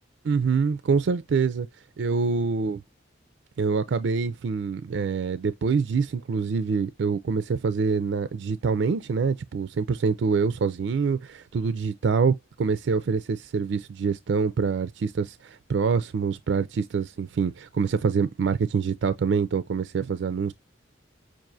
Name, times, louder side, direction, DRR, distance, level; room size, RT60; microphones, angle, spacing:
voice 1, 0.2-1.7 2.0-2.8 3.6-20.5, right 5 dB, 70° right, 0.4 m, -25 dB
6.0 x 2.5 x 2.5 m
head